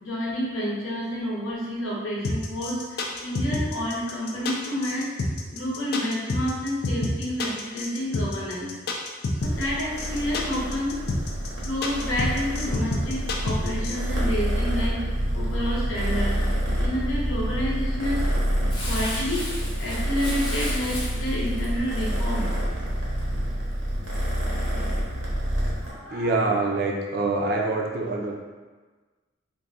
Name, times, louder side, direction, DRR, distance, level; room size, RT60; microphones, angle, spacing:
voice 1, 0.0-5.1 5.5-8.7 9.4-11.0 11.6-15.0 15.3-16.4 16.8-18.2 18.8-19.5 19.8-22.5 25.8-26.3, equal, 90° left, -4 dB, 0.9 m, -29 dB
sound 1, 2.2-13.9, left 2 dB, 50° left, 0.4 m, -27 dB
Purr, 9.4-25.9, equal, 90° right, 0.9 m, -27 dB
Crumpling crinkling, 18.7-23.2 23.7-23.8, left 1 dB, 25° left, 0.7 m, -36 dB
voice 2, 26.1-28.4, right 3 dB, 50° right, 0 dB, 0.4 m, -25 dB
2.6 x 2.6 x 3.6 m, 1.3 s
head